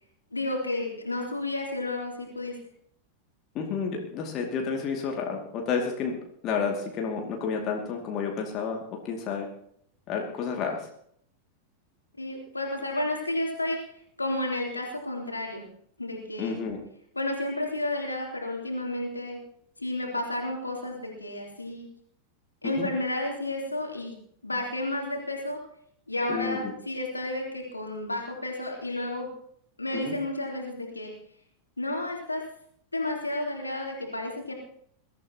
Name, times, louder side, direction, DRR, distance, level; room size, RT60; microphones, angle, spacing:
voice 1, 0.3-2.5 12.2-13.8 14.2-15.7 16.0-16.6 17.1-19.4 19.8-21.9 22.6-24.1 24.4-25.6 26.1-29.3 29.8-31.1 31.8-32.4 32.9-34.5, left 1 dB, 80° left, 0 dB, 3.4 m, -31 dB
voice 2, 3.5-9.5 10.1-10.9 16.4-16.8 22.6-22.9 26.3-26.7 29.9-30.1, left 5 dB, 35° left, 1 dB, 2.4 m, -31 dB
22.0 x 13.5 x 3.0 m, 0.65 s
figure-of-eight pair, 90°, 0 cm